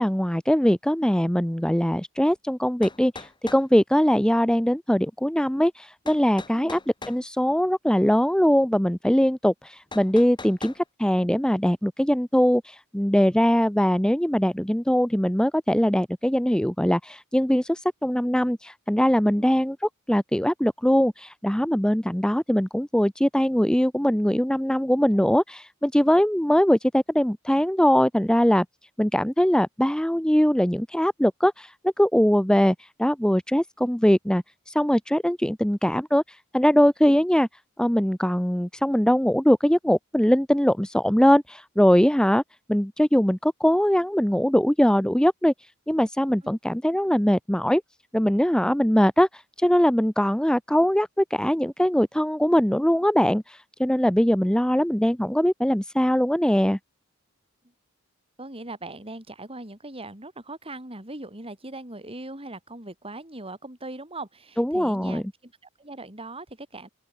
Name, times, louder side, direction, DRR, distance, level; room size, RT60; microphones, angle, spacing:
voice 1, 0.0-6.8 7.1-28.7 29.0-37.5 37.8-42.4 42.7-45.5 45.9-47.8 48.1-56.8 64.6-65.2, equal, 5° left, 0.8 m, -21 dB
sound 1, 2.3-2.4 2.8-3.7 6.1-7.2 9.9-10.8, left 3 dB, 20° left, 4.1 m, -40 dB
voice 2, 58.4-66.9, right 2 dB, 25° right, 5.6 m, -40 dB
open air
head